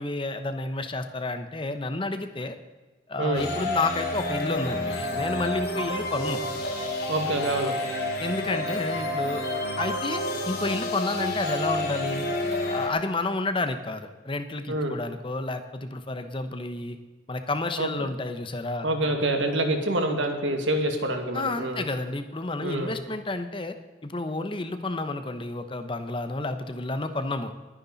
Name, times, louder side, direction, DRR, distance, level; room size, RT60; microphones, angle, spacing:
voice 1, 0.0-2.6 3.1-6.4 8.2-9.4 9.8-12.2 12.7-17.0 17.3-18.9 21.3-23.8 24.0-27.5, left 2 dB, 25° left, 8 dB, 1.0 m, -30 dB
voice 2, 3.2-3.5 7.1-7.8 14.7-15.0 17.8-18.1 18.8-21.9 22.6-23.0, right 1 dB, 85° right, 4 dB, 2.2 m, -26 dB
sound 1, 3.3-12.9, left 1 dB, 55° left, 2.8 m, -29 dB
21.0 x 10.0 x 4.1 m, 1.2 s
head